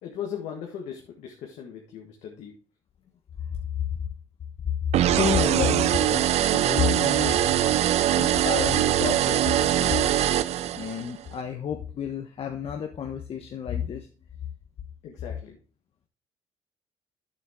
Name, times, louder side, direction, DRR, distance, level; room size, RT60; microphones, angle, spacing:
voice 1, 0.0-2.5 15.0-15.6, left 8 dB, 80° left, 1 dB, 1.6 m, -38 dB
sound 1, 4.9-11.1, right 12 dB, 70° right, 0.6 m, -22 dB
voice 2, 5.1-6.3 6.5-7.4 8.1-10.2 10.7-14.1, left 8 dB, 55° left, 4 dB, 1.1 m, -30 dB
9.3 x 7.2 x 3.7 m, 0.36 s
supercardioid pair, 70°, 11 cm